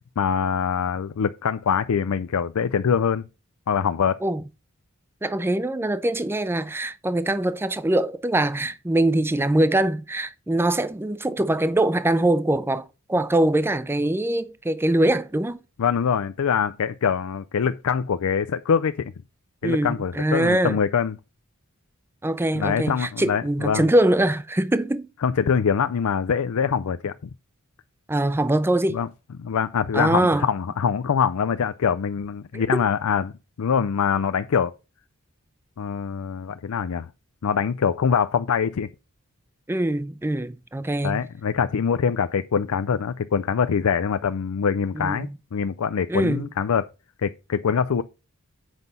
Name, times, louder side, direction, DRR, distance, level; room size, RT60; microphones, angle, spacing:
voice 1, 0.2-3.2 3.7-4.2 15.8-19.1 19.6-21.2 22.5-23.9 25.2-27.1 28.9-29.1 29.4-33.3 33.6-34.7 35.8-37.1 37.4-38.9 41.0-46.9 47.2-48.0, left 6 dB, 80° left, 0.4 m, -24 dB
voice 2, 5.2-15.6 19.6-20.8 22.2-25.1 28.1-29.0 29.9-30.5 32.5-32.8 39.7-41.2 44.9-45.4 46.1-46.5, right 1 dB, 10° right, 0.4 m, -23 dB
8.0 x 5.3 x 5.4 m
head